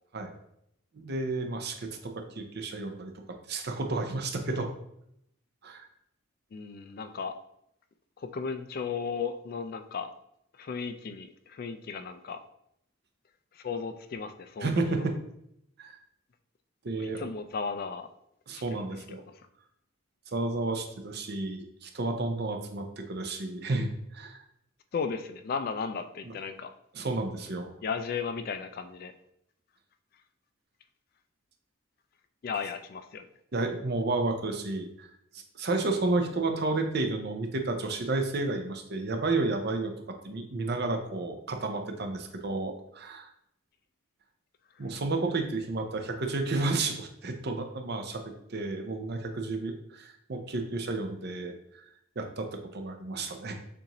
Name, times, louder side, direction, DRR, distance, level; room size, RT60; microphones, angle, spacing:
voice 1, 0.9-3.1 3.5-4.7 5.6-5.9 14.6-15.2 15.8-16.0 16.8-17.3 18.5-19.2 20.3-24.4 26.2-26.3 26.9-27.7 33.5-35.1 35.3-39.9 40.2-43.3 44.8-48.2 48.5-51.8 52.2-53.5, right 2 dB, 50° right, 5 dB, 0.6 m, -31 dB
voice 2, 6.5-7.3 8.2-10.1 10.6-12.4 13.5-14.7 17.0-18.1 18.8-19.0 24.9-26.7 27.8-29.1 32.4-33.3, left 5 dB, 45° left, 9 dB, 0.3 m, -35 dB
6.8 x 2.6 x 2.9 m, 0.75 s
head